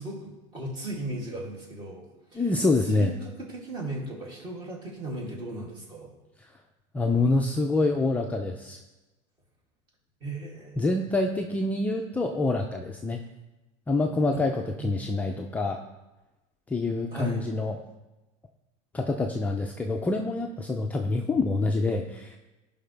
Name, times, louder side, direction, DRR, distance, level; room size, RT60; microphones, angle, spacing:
voice 1, 0.0-2.4 2.9-6.1 10.2-10.9 14.3-14.4 14.7-15.1 17.1-17.4, right 1 dB, 30° right, -2 dB, 2.7 m, -36 dB
voice 2, 2.3-3.1 6.4-6.5 6.9-8.8 10.8-13.2 13.9-15.8 16.7-17.8 18.9-22.4, left 2 dB, 10° left, 2 dB, 0.4 m, -26 dB
15.5 x 5.6 x 3.4 m, 1.1 s
cardioid pair, 160°, 15 cm